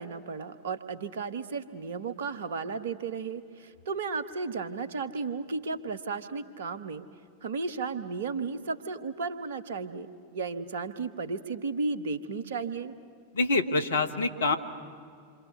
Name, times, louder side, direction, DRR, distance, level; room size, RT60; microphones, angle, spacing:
voice 1, 0.0-7.0 7.4-12.9, right 4 dB, 60° right, 12 dB, 1.2 m, -34 dB
voice 2, 13.3-14.6, left 3 dB, 65° left, 10 dB, 1.5 m, -26 dB
27.5 x 26.0 x 6.9 m, 2.4 s
figure-of-eight pair, 90°, 0 cm